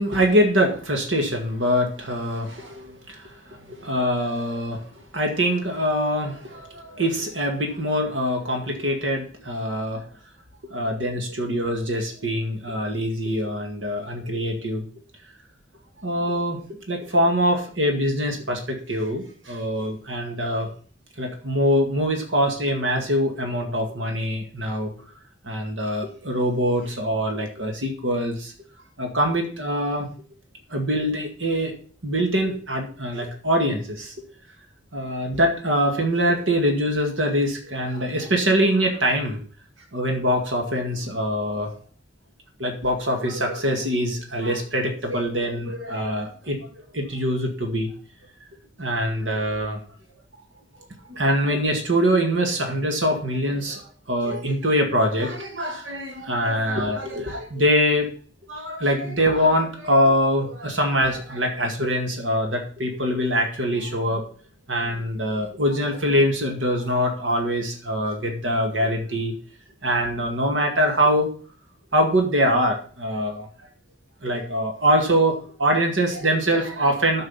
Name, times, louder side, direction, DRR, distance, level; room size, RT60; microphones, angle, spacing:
voice 1, 0.0-3.3 3.7-4.9 5.1-10.0 10.7-14.8 16.0-16.6 16.9-20.7 21.2-24.9 25.4-28.5 29.0-30.1 30.7-31.7 32.0-34.1 34.9-39.4 39.9-41.7 42.6-46.6 46.9-47.9 48.8-49.8 51.1-53.8 54.1-58.1 58.5-64.2 64.7-69.3 69.8-71.3 71.9-73.5 74.2-77.2, equal, 85° right, 3 dB, 2.0 m, -23 dB
13.0 x 5.4 x 5.7 m, 0.43 s
head